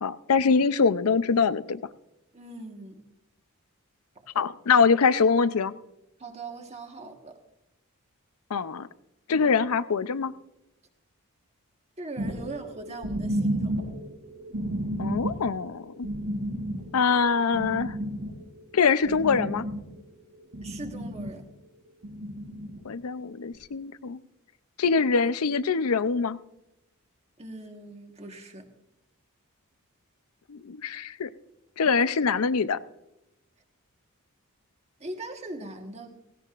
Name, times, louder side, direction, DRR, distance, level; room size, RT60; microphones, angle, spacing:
voice 1, 0.0-1.8 4.4-5.7 8.5-8.9 9.3-10.3 15.0-15.9 16.9-17.9 18.7-19.6 22.8-24.2 24.8-26.4 30.5-31.3 31.8-32.8, left 5 dB, 80° left, 14 dB, 0.5 m, -24 dB
voice 2, 2.3-3.0 4.1-4.3 6.2-7.4 12.0-13.7 20.6-21.4 27.4-28.7 35.0-36.1, right 2 dB, 30° right, 4 dB, 1.4 m, -40 dB
sound 1, 12.2-20.0 20.3-21.3 22.0-22.8 23.5-23.6, right 1 dB, 85° right, 4.6 m, -32 dB
17.0 x 17.0 x 2.5 m, 0.88 s
head